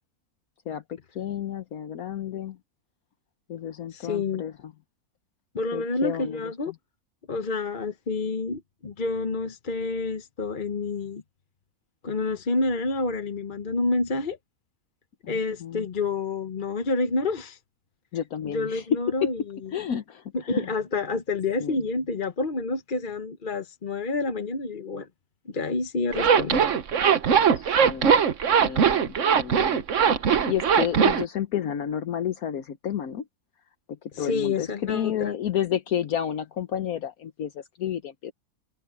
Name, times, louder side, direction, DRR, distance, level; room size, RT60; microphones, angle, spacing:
voice 1, 0.7-2.6 3.5-4.7 5.7-6.7 15.2-15.3 15.6-15.8 18.1-19.3 19.7-20.7 21.6-21.8 27.5-28.2 28.6-29.8 30.2-33.3 33.9-38.3, left 9 dB, 70° left, 1.4 m, -31 dB
voice 2, 3.9-4.4 5.5-6.7 7.3-11.2 12.0-14.4 15.3-17.6 18.4-19.6 20.3-25.1 25.4-26.7 34.1-35.3, left 3 dB, 35° left, 1.0 m, -28 dB
Zipper (clothing), 26.1-31.2, right 7 dB, 55° right, 1.4 m, -20 dB
omnidirectional pair, 1.6 m